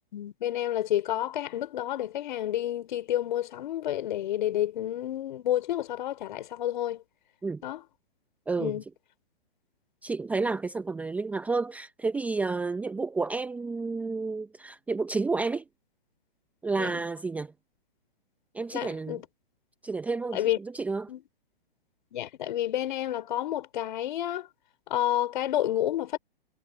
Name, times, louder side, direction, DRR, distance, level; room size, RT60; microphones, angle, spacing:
voice 1, 0.1-7.0 7.6-7.8 8.6-8.8 16.8-17.0 18.7-19.3 20.3-20.6 21.1-21.2 22.1-24.5 24.9-26.2, left 12 dB, 50° left, 3.3 m, -30 dB
voice 2, 8.5-8.8 10.0-15.6 16.6-17.5 18.5-19.2 19.8-21.1, right 3 dB, 5° right, 0.8 m, -30 dB
hypercardioid pair, 135°, 30 cm